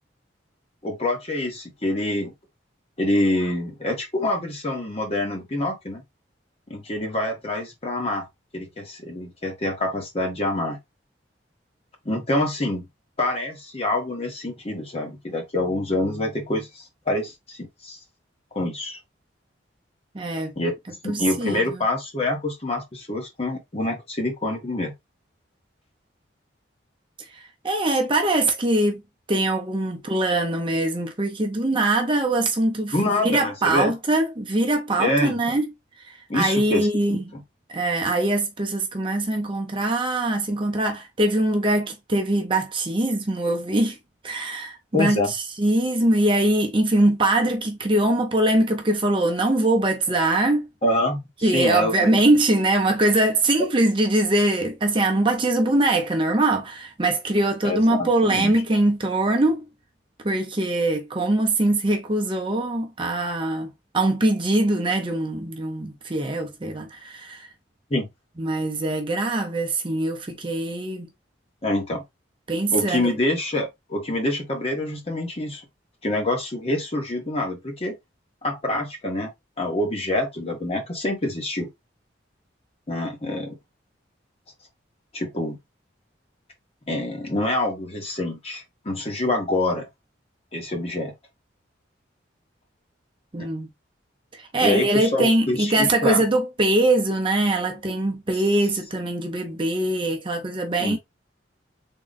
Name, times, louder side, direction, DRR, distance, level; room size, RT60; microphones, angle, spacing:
voice 1, 0.8-2.3 3.0-6.0 6.7-8.3 8.5-10.8 12.0-12.9 13.2-18.0 18.5-19.0 20.6-20.7 21.0-24.9 32.9-33.9 35.0-35.4 36.3-37.4 44.9-45.3 50.8-52.1 57.6-58.5 67.9-68.1 71.6-72.0 72.7-75.6 76.0-78.0 78.4-79.3 79.6-81.7 82.9-83.6 85.1-85.6 86.9-89.9 90.5-91.1 93.4-93.5 94.6-96.2 100.8-101.0, left 1 dB, 30° left, 1.1 m, -26 dB
voice 2, 20.1-20.5 21.1-21.8 27.6-29.0 29.3-35.6 36.1-37.2 37.7-44.0 44.2-50.7 51.4-59.7 60.2-67.5 68.4-71.1 72.5-73.1 93.3-93.7 94.3-101.0, right 1 dB, 25° right, 0.6 m, -22 dB
3.7 x 2.2 x 3.9 m
head